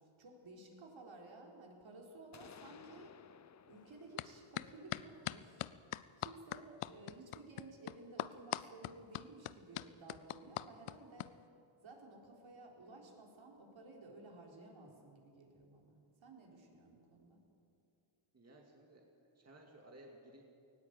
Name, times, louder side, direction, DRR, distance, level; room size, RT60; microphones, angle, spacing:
voice 1, 0.2-3.2 3.7-5.7 6.2-11.3 11.8-17.4, right 2 dB, 65° right, 0 dB, 4.1 m, -55 dB
sound 1, 2.3-6.1, left 8 dB, 35° left, 0.5 m, -60 dB
sound 2, 4.2-4.3 4.6-11.3, left 14 dB, 80° left, 0.6 m, -41 dB
voice 2, 18.3-19.1 19.3-20.4, right 1 dB, 30° right, 0 dB, 2.3 m, -58 dB
19.0 x 17.0 x 8.3 m, 2.6 s
wide cardioid pair, 115°, 50 cm